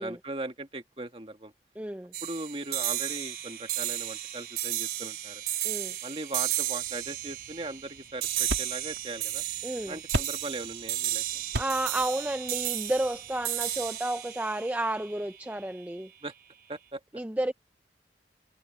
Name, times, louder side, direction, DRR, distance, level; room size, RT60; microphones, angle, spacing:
voice 1, 0.0-1.5 2.2-5.4 6.0-9.4 9.9-11.2 16.2-16.3 16.7-17.0, right 2 dB, 30° right, 1.7 m, -39 dB
voice 2, 1.8-2.1 5.6-5.9 9.6-10.0 11.5-16.1 17.1-17.6, right 1 dB, 10° right, 0.4 m, -31 dB
sound 1, 2.1-15.6, right 13 dB, 60° right, 3.7 m, -34 dB
sound 2, 6.8-13.9, right 1 dB, 80° right, 2.4 m, -39 dB
head